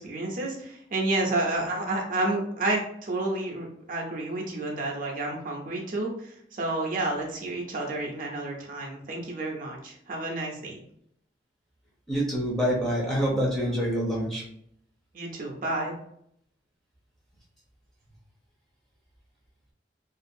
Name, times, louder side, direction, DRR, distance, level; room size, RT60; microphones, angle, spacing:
voice 1, 0.0-10.8 15.1-15.9, right 2 dB, 50° right, -1 dB, 0.5 m, -30 dB
voice 2, 12.1-14.4, equal, ahead, -5 dB, 0.6 m, -26 dB
2.5 x 2.3 x 2.6 m, 0.70 s
head